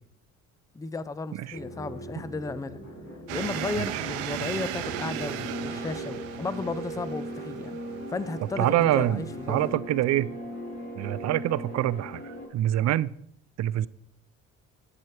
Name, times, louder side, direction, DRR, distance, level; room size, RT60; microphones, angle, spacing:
voice 1, 0.7-2.8 3.3-7.8 8.1-9.8, left 3 dB, 10° left, 0.4 m, -34 dB
sound 1, 1.5-12.5, equal, 45° left, 3.9 m, -39 dB
sound 2, 3.3-9.7, right 12 dB, 90° right, 0.6 m, -37 dB
voice 2, 8.6-10.3 11.0-13.2 13.6-13.9, right 13 dB, 50° right, 0.4 m, -26 dB
9.5 x 7.3 x 3.2 m
supercardioid pair, 70°, 35 cm